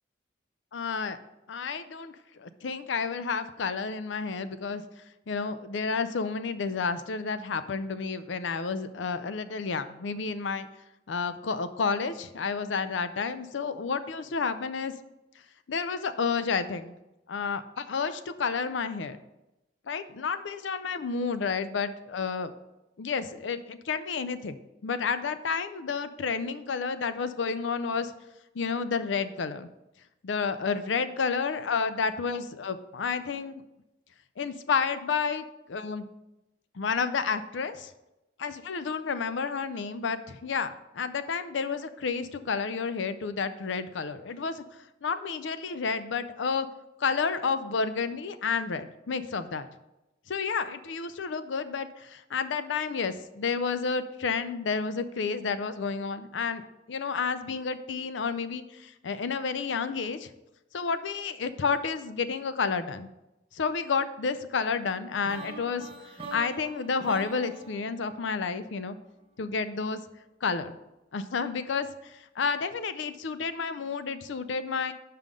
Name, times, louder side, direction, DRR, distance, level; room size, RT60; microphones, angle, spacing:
voice 1, 0.7-1.2 1.5-4.8 5.3-10.7 11.1-14.9 15.7-16.9 17.3-19.2 19.9-22.5 23.0-24.6 24.8-28.1 28.5-29.7 30.2-33.6 34.4-36.1 36.7-37.9 38.4-44.6 45.0-46.7 47.0-49.7 50.3-60.3 60.7-63.1 63.5-65.9 66.3-69.0 69.4-70.0 70.4-70.7 71.1-74.9, left 5 dB, 85° left, 12 dB, 0.5 m, -30 dB
sound 1, 65.2-69.2, right 2 dB, 30° right, 1.0 m, -44 dB
5.6 x 5.2 x 6.2 m, 0.94 s
head